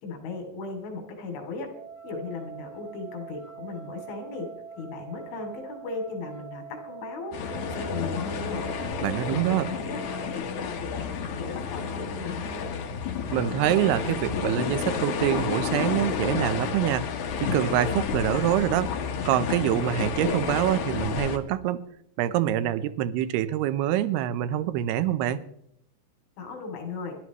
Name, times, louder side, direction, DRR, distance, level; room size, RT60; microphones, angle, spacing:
voice 1, 0.0-1.7 2.0-4.5 4.7-8.6 9.2-10.0 10.3-12.7 26.4-27.1, left 3 dB, 90° left, 3 dB, 5.2 m, -37 dB
sound 1, 1.7-10.4, right 7 dB, 60° right, 2.6 m, -44 dB
sound 2, 7.3-21.4, left 6 dB, 70° left, 1.9 m, -31 dB
voice 2, 9.0-9.7 13.3-17.1 17.4-18.9 19.3-21.8 22.2-25.4, right 12 dB, 75° right, 13 dB, 2.5 m, -25 dB
26.0 x 12.5 x 3.1 m, 0.74 s
omnidirectional pair, 5.2 m